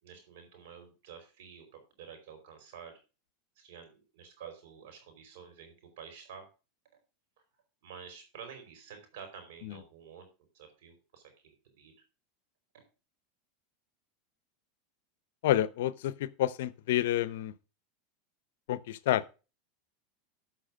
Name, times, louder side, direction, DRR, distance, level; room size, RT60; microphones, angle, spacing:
voice 1, 0.0-3.0 3.6-6.5 7.8-10.3 10.5-11.9 12.7-12.9, right 7 dB, 70° right, 4.7 m, -50 dB
voice 2, 15.4-17.5 18.7-19.2, left 13 dB, 75° left, 0.6 m, -29 dB
12.5 x 5.7 x 5.1 m
supercardioid pair, 125°, 0 cm